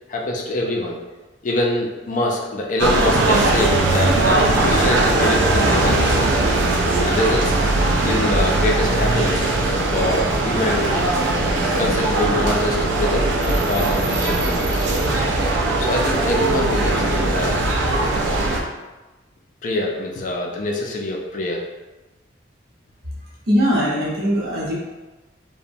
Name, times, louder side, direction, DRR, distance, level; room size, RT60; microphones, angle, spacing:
voice 1, 0.1-1.0 1.4-6.2 7.0-7.6 8.0-9.5 9.9-11.1 11.8-14.9 15.8-17.6 19.6-21.7, left 1 dB, 40° left, 0 dB, 0.3 m, -24 dB
sound 1, 2.8-18.6, right 2 dB, 80° right, 0.4 m, -19 dB
voice 2, 23.5-24.7, equal, 55° right, -6 dB, 0.7 m, -20 dB
2.9 x 2.1 x 2.5 m, 1.1 s
head